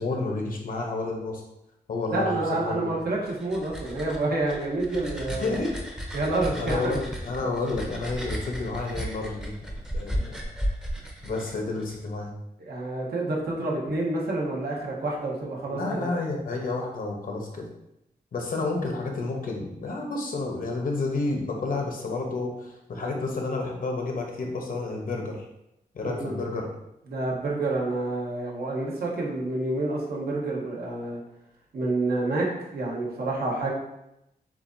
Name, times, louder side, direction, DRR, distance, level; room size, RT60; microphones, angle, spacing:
voice 1, 0.0-1.4 1.9-2.9 5.4-5.7 6.6-9.5 9.9-10.4 11.2-12.3 15.7-17.7 18.3-25.5 25.9-26.7, left 3 dB, 60° left, 1 dB, 0.9 m, -30 dB
voice 2, 2.1-5.6 6.1-6.9 12.6-16.1 26.0-26.4 27.1-31.2 31.7-33.7, right 2 dB, 75° right, -3 dB, 1.2 m, -28 dB
sound 1, 3.0-12.0, equal, 5° right, 0.7 m, -34 dB
7.3 x 2.4 x 2.7 m, 0.86 s
wide cardioid pair, 120°, 16 cm